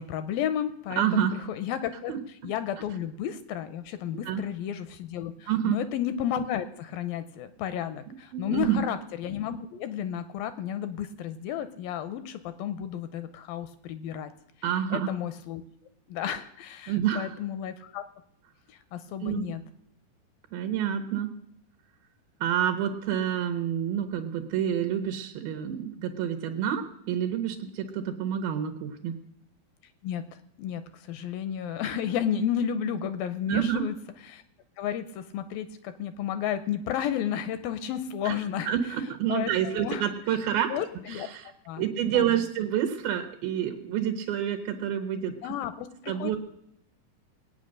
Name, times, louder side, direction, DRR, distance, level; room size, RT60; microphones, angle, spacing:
voice 1, 0.0-2.1 2.4-14.3 14.9-15.6 16.1-18.0 18.7-19.6 30.0-30.2 30.6-33.9 34.3-34.4 34.8-38.7 39.3-39.5 39.8-40.1 40.7-41.3 41.7-41.8 42.1-42.3 45.4-46.3, left 9 dB, 80° left, 11 dB, 2.2 m, -32 dB
voice 2, 1.0-1.4 2.1-2.2 4.2-4.4 5.5-5.8 8.3-8.8 14.6-15.1 16.9-17.4 19.2-19.5 20.5-21.3 22.4-29.2 33.5-33.8 38.2-38.4 38.7-40.7 41.1-41.5 41.8-45.3 46.1-46.4, right 9 dB, 70° right, 6 dB, 2.7 m, -28 dB
20.5 x 9.2 x 6.4 m, 0.75 s
omnidirectional pair, 4.5 m